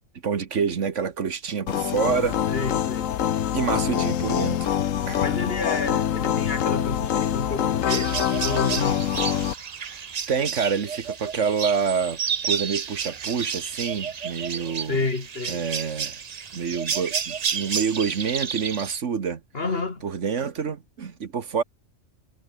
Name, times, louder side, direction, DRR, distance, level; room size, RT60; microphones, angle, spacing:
voice 1, 0.2-2.4 3.5-4.7 5.1-5.2 9.9-15.0 15.5-16.2 16.5-19.4 20.0-21.6, right 6 dB, 65° right, 1.7 m, -27 dB
sound 1, 1.7-9.5, left 10 dB, 80° left, 1.3 m, -25 dB
voice 2, 2.5-3.1 5.2-9.1 14.9-15.6 19.5-20.0, left 3 dB, 50° left, 2.3 m, -30 dB
sound 2, 7.9-19.0, right 7 dB, 40° right, 0.7 m, -31 dB
omnidirectional pair, 1.3 m